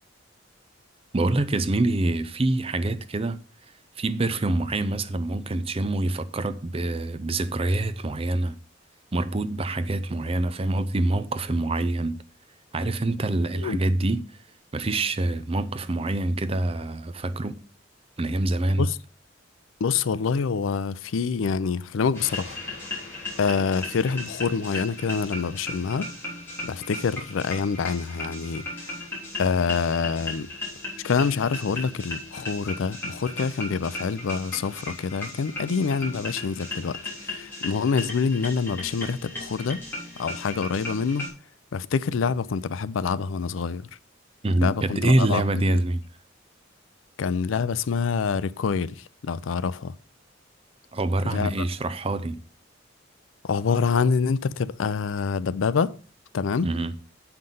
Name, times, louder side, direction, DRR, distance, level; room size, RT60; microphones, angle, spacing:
voice 1, 1.1-3.4 4.0-8.6 9.1-12.2 12.7-14.2 14.7-17.6 18.2-18.9 44.4-46.0 50.9-52.4 56.6-56.9, right 2 dB, 30° right, 0.6 m, -25 dB
voice 2, 19.8-22.6 23.4-26.1 26.6-28.7 29.4-30.5 31.0-39.8 40.2-41.3 41.7-43.9 44.6-45.4 47.2-49.9 51.2-51.5 53.4-56.0 56.3-56.7, left 5 dB, 85° left, 0.4 m, -26 dB
sound 1, 22.1-41.3, left 2 dB, 10° left, 3.6 m, -36 dB
7.7 x 5.8 x 5.3 m
head